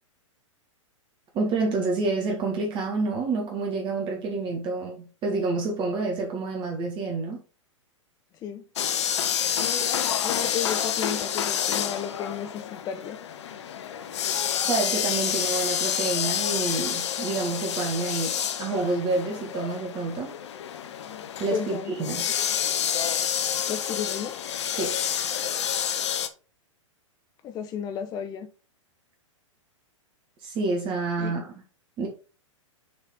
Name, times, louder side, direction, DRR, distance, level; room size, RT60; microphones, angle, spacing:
voice 1, 1.3-7.4 14.6-20.3 21.4-22.3 24.7-25.0 30.4-31.5 32.0-32.1, right 3 dB, 30° right, 1.6 m, -28 dB
sound 1, 8.8-26.3, left 9 dB, 60° left, 0.8 m, -28 dB
voice 2, 10.2-13.2 21.5-22.3 23.7-24.3 27.4-28.5 31.2-31.3, left 8 dB, 25° left, 0.5 m, -33 dB
6.7 x 4.1 x 3.7 m
figure-of-eight pair, 105°, 17 cm